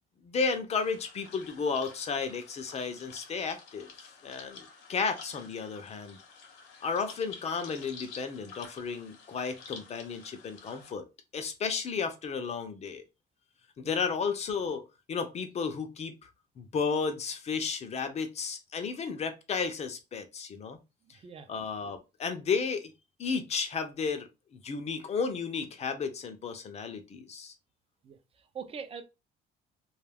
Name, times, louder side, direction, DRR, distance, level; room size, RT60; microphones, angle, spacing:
voice 1, 0.2-6.2 6.8-11.0 11.3-13.0 13.8-14.8 15.1-16.3 16.6-20.8 21.5-22.9 23.2-27.5, left 5 dB, 40° left, 0.5 m, -33 dB
sound 1, 0.7-10.9, left 5 dB, 90° left, 0.8 m, -50 dB
voice 2, 21.0-21.5 28.0-29.0, right 6 dB, 35° right, 0.5 m, -43 dB
2.3 x 2.3 x 3.3 m
cardioid pair, 110°, 17 cm